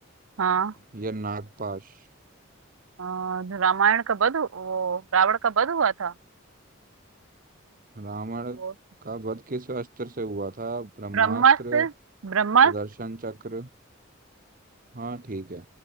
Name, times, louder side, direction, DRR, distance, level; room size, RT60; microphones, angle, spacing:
voice 1, 0.4-0.7 3.0-6.1 8.6-8.7 11.1-11.9 12.2-12.7, right 7 dB, 80° right, 0.6 m, -22 dB
voice 2, 0.9-2.0 7.9-8.6 9.0-11.9 12.6-13.7 14.9-15.6, right 3 dB, 40° right, 1.0 m, -34 dB
open air
head